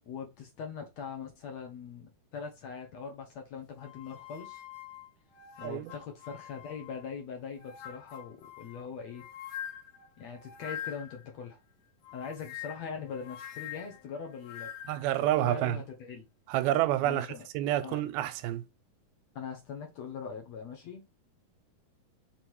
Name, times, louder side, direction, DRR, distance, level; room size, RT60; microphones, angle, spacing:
voice 1, 0.1-4.6 5.6-9.2 10.2-11.6 12.1-14.7 15.4-16.2 17.0-17.4 17.8-18.0 19.4-21.0, left 6 dB, 60° left, 1.9 m, -41 dB
sound 1, 3.8-7.1 7.5-11.3 12.0-15.1, left 10 dB, 90° left, 3.1 m, -45 dB
voice 2, 5.6-5.9 14.9-15.8 16.5-17.3 17.5-18.6, right 14 dB, 90° right, 2.5 m, -28 dB
6.1 x 3.7 x 4.6 m
omnidirectional pair, 4.3 m